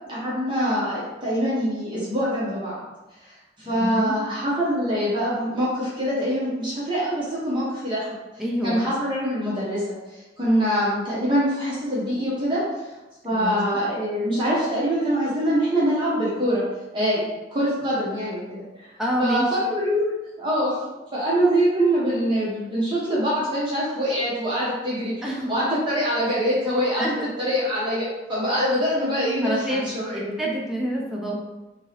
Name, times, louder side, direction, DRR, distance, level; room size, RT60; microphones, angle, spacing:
voice 1, 0.1-2.8 3.6-8.1 8.6-9.8 10.1-12.6 13.2-16.6 16.9-17.2 17.5-18.9 19.2-20.1 20.4-20.8 21.1-29.6 29.9-30.3, equal, 25° right, -8 dB, 0.8 m, -24 dB
voice 2, 3.6-4.3 8.4-8.8 13.3-13.8 19.0-19.5 25.2-25.5 27.0-27.1 29.4-31.4, equal, ahead, -4 dB, 0.6 m, -27 dB
2.8 x 2.7 x 3.1 m, 1.1 s
head